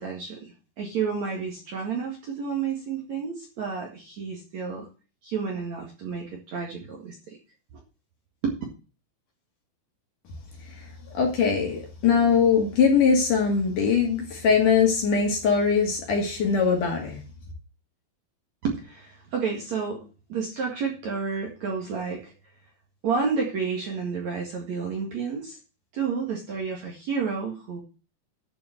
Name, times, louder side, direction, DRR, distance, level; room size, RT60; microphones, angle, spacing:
voice 1, 0.0-4.9 5.2-7.4 8.4-8.6 18.6-22.3 23.0-25.6 25.9-27.8, right 5 dB, 50° right, 2.6 m, -30 dB
voice 2, 11.1-17.2, left 6 dB, 50° left, 3.4 m, -21 dB
11.5 x 5.7 x 7.8 m
omnidirectional pair, 5.2 m